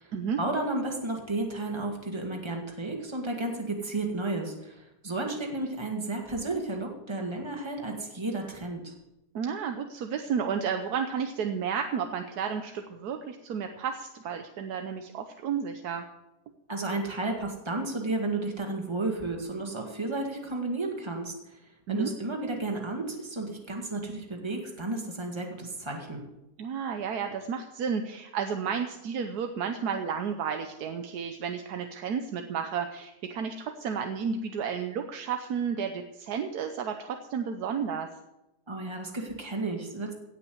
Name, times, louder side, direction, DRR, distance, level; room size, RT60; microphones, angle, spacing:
voice 1, 0.4-8.9 16.7-21.3 21.9-26.2 38.7-40.1, right 2 dB, 15° right, 1 dB, 2.1 m, -32 dB
voice 2, 9.3-16.1 21.9-22.1 26.6-38.1, right 7 dB, 90° right, 6 dB, 1.4 m, -32 dB
17.0 x 5.9 x 7.9 m, 0.92 s
omnidirectional pair, 1.6 m